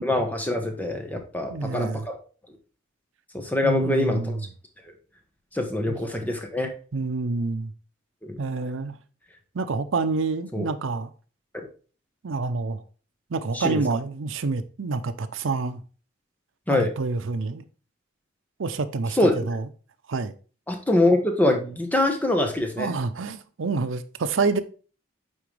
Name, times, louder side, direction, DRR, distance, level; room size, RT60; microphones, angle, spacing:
voice 1, 0.0-2.2 3.3-4.4 5.5-6.7 8.2-8.4 10.5-10.7 11.5-11.6 13.5-13.8 16.7-16.9 19.2-19.3 20.7-22.9, left 1 dB, 10° left, 1.0 m, -24 dB
voice 2, 1.5-2.1 3.6-4.4 5.9-6.0 6.9-7.7 8.4-9.0 9.5-11.1 12.2-12.8 13.3-15.8 16.7-17.6 18.6-19.7 20.1-20.3 22.8-24.6, right 3 dB, 90° right, 0.6 m, -27 dB
8.8 x 3.9 x 3.2 m
head